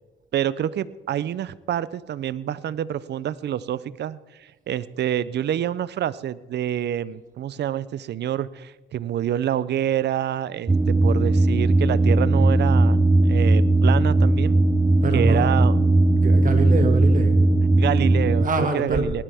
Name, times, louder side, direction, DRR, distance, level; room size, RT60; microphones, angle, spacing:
voice 1, 0.3-10.7 11.0-14.6 15.1-15.8 17.8-19.2, right 10 dB, 60° right, 18 dB, 0.6 m, -27 dB
sound 1, 10.7-18.5, right 2 dB, 15° right, 0.7 m, -18 dB
voice 2, 15.0-15.5 16.1-17.4 18.4-19.1, right 3 dB, 40° right, 5 dB, 2.0 m, -25 dB
19.0 x 12.0 x 3.6 m, 1.2 s
cardioid pair, 90°, 20 cm